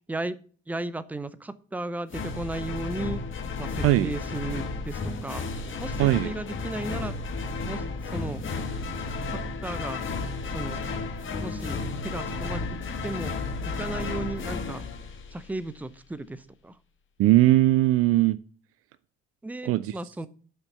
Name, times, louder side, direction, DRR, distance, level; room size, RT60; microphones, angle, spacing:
voice 1, 0.7-3.2 3.6-5.5 5.8-7.1 7.7-7.8 8.1-8.4 9.3-10.0 10.5-10.8 11.4-11.8 12.0-12.8 13.0-13.3 13.8-14.8 15.3-16.7 19.4-20.3, right 2 dB, 5° right, 0.7 m, -35 dB
sound 1, 2.1-15.7, left 3 dB, 35° left, 1.4 m, -33 dB
voice 2, 3.8-4.1 6.0-6.3 17.2-18.4 19.6-20.0, right 16 dB, 40° right, 0.4 m, -20 dB
7.9 x 5.8 x 7.1 m
figure-of-eight pair, 55°, 35 cm